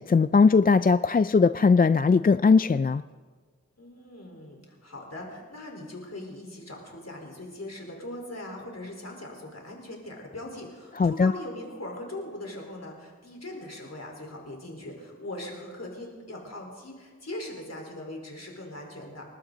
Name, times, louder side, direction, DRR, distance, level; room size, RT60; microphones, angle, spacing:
voice 1, 0.0-3.0 11.0-11.3, left 4 dB, 30° left, 13 dB, 0.4 m, -20 dB
voice 2, 3.8-19.2, left 1 dB, 60° left, 0 dB, 4.3 m, -40 dB
29.0 x 12.5 x 4.0 m, 1.5 s
wide cardioid pair, 50°, 30 cm